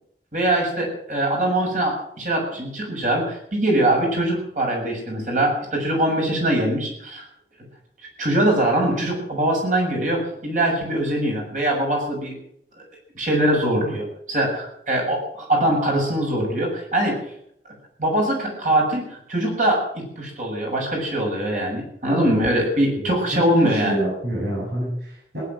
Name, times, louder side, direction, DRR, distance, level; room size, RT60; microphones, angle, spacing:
voice 1, 0.3-7.2 8.2-12.3 13.2-17.2 18.0-24.0, right 1 dB, 45° right, 0 dB, 6.9 m, -22 dB
voice 2, 23.3-25.4, right 1 dB, 70° right, -6 dB, 7.6 m, -27 dB
18.0 x 10.5 x 7.5 m, 0.69 s
head